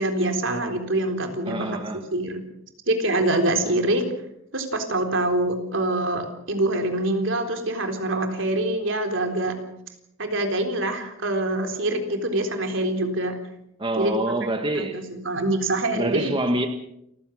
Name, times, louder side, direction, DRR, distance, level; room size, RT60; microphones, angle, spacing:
voice 1, 0.0-1.8 2.1-2.4 2.9-4.0 4.5-9.5 10.2-13.3 14.0-14.1 14.7-16.3, right 1 dB, 70° right, 3.9 m, -25 dB
voice 2, 1.4-2.0 13.8-15.0 15.9-16.7, right 1 dB, 25° right, 1.6 m, -26 dB
29.0 x 15.5 x 6.4 m
head